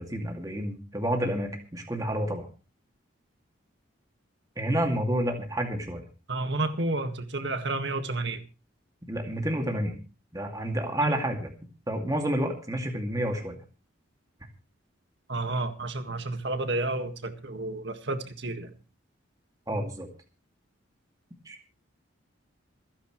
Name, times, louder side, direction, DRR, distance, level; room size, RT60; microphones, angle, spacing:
voice 1, 0.0-2.5 4.6-6.0 9.1-10.0 10.3-11.5 11.9-13.6 19.7-20.1 21.5-21.6, right 1 dB, 20° right, 3 dB, 2.4 m, -29 dB
voice 2, 6.3-8.4 11.0-11.1 15.3-18.7, right 2 dB, 60° right, 7 dB, 1.9 m, -31 dB
27.5 x 10.0 x 3.2 m, 0.33 s
head